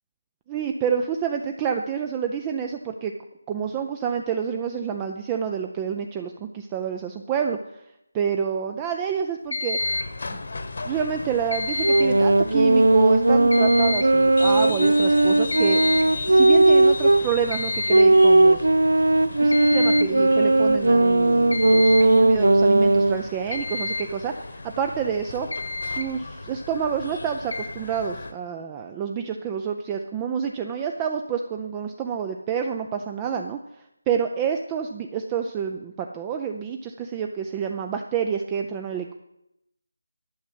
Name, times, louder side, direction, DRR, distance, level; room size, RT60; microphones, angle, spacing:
voice 1, 0.5-3.1 3.5-7.6 8.1-9.8 10.9-15.8 16.3-18.7 19.4-24.3 24.8-25.5 25.8-33.6 34.1-39.1, right 7 dB, 10° right, 5 dB, 0.4 m, -28 dB
sound 1, 9.5-10.2 11.5-12.2 13.5-14.2 15.5-16.2 17.5-18.2 19.5-20.2 21.5-22.2 23.5-24.1 25.2-25.3 25.5-26.1 27.5-27.7, left 2 dB, 75° left, 1.8 m, -29 dB
sound 2, 9.8-28.3, left 3 dB, 55° left, 1.2 m, -36 dB
sound 3, 11.8-17.3 17.9-23.2, right 2 dB, 85° right, 0.7 m, -17 dB
11.0 x 6.1 x 8.4 m, 0.84 s
figure-of-eight pair, 170°, 0 cm